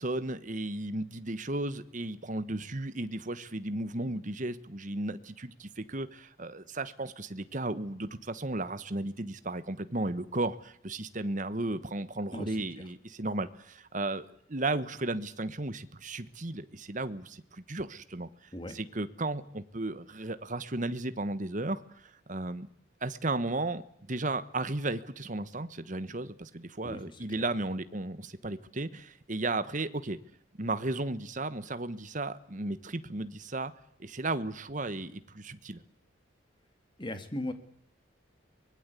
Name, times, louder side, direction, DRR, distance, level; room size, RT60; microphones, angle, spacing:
voice 1, 0.0-18.3 18.7-21.8 22.3-22.7 23.0-23.8 24.1-30.2 30.6-33.7 34.0-35.8, right 2 dB, 40° right, 12 dB, 1.2 m, -34 dB
voice 2, 12.3-12.9 18.5-18.8 26.8-27.4 37.0-37.5, left 1 dB, 25° left, 8 dB, 2.3 m, -39 dB
24.0 x 20.5 x 8.4 m, 0.69 s
head